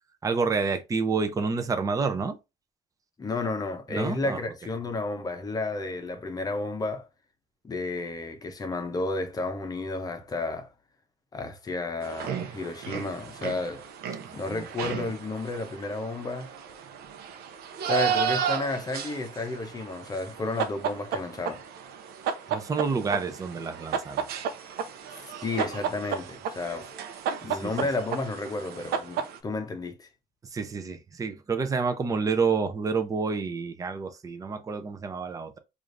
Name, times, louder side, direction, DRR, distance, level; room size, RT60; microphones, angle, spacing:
voice 1, 0.2-2.4 3.9-4.4 14.3-14.6 22.5-24.2 27.5-27.7 30.5-35.6, right 4 dB, 20° right, 0.5 m, -29 dB
voice 2, 3.2-7.1 7.6-10.7 11.3-13.9 14.3-16.5 17.8-21.7 25.4-26.9 27.4-30.1, left 3 dB, 20° left, 0.7 m, -32 dB
sound 1, 12.0-29.4, right 7 dB, 70° right, 0.6 m, -33 dB
4.8 x 2.5 x 2.5 m
cardioid pair, 125°, 17 cm